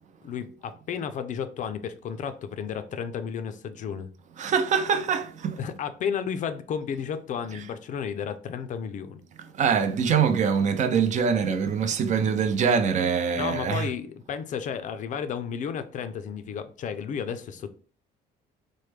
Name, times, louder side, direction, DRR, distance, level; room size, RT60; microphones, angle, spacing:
voice 1, 0.2-4.1 5.6-9.2 13.4-17.7, left 7 dB, 50° left, 0.4 m, -32 dB
voice 2, 4.4-5.6 9.6-13.9, right 6 dB, 45° right, 0.5 m, -24 dB
3.2 x 2.1 x 3.2 m
cardioid pair, 110°, 17 cm